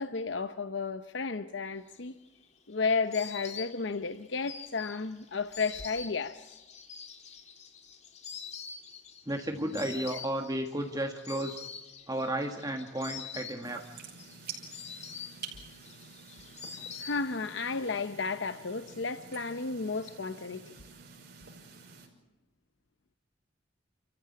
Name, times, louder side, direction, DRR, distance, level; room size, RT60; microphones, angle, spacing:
voice 1, 0.0-2.2 2.7-6.5 17.0-20.7, left 4 dB, 70° left, 0.8 m, -33 dB
Insect, 2.0-17.7 17.9-18.7, left 6 dB, 40° left, 2.3 m, -46 dB
voice 2, 9.3-11.6 12.1-13.8, right 1 dB, 20° right, 1.5 m, -33 dB
sound 1, 13.6-22.1, right 6 dB, 55° right, 5.4 m, -48 dB
29.5 x 14.5 x 8.6 m
head